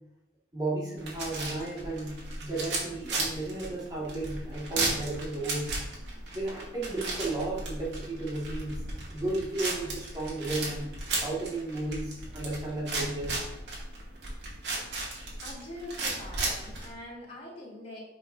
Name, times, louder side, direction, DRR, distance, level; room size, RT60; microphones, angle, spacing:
voice 1, 0.5-5.7 6.3-8.8 9.1-10.9 11.2-13.4, right 2 dB, 20° right, -4 dB, 1.9 m, -34 dB
sound 1, 1.0-16.9, right 2 dB, 90° right, 2.3 m, -35 dB
voice 2, 15.4-18.0, left 1 dB, 35° left, -5 dB, 2.9 m, -43 dB
10.0 x 5.6 x 2.7 m, 0.91 s
head